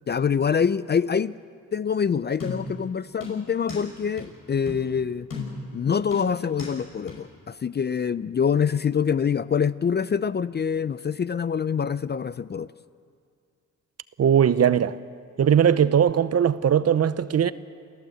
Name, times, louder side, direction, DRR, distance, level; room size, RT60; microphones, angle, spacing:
voice 1, 0.1-1.3 1.7-5.3 5.7-12.7, left 7 dB, 30° left, 0.4 m, -25 dB
sound 1, 2.4-2.8 3.2-3.9 4.2-4.3 4.7-4.9 5.3-5.7 6.1-6.8 7.1-7.2, left 4 dB, 75° left, 6.3 m, -35 dB
voice 2, 14.2-15.0 15.4-17.5, right 8 dB, 45° right, 0.8 m, -19 dB
28.5 x 15.0 x 7.8 m
cardioid pair, 80°, 34 cm